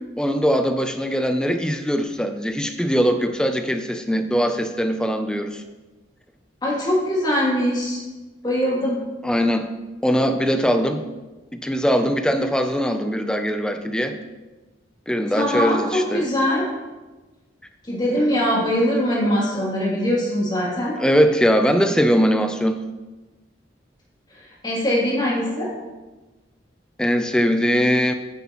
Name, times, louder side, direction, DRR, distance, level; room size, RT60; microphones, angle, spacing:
voice 1, 0.2-5.6 9.2-9.7 10.0-11.0 11.5-14.2 15.1-16.2 21.0-22.8 27.0-28.1, equal, 5° left, 7 dB, 0.4 m, -21 dB
voice 2, 6.6-8.0 8.4-9.0 15.3-16.7 17.9-21.0 24.6-25.7, equal, 25° left, -6 dB, 2.7 m, -22 dB
9.2 x 8.3 x 3.0 m, 1.2 s
head